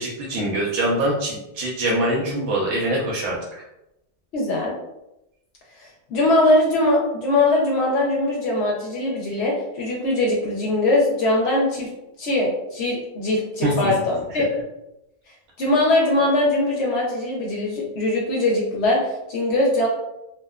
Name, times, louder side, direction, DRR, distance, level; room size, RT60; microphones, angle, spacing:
voice 1, 0.0-3.6 13.6-13.7, right 1 dB, 75° right, -5 dB, 1.0 m, -24 dB
voice 2, 4.3-4.8 5.8-11.9 12.2-14.5 15.6-19.9, left 2 dB, 70° left, -2 dB, 0.8 m, -21 dB
2.8 x 2.1 x 2.2 m, 0.89 s
omnidirectional pair, 1.2 m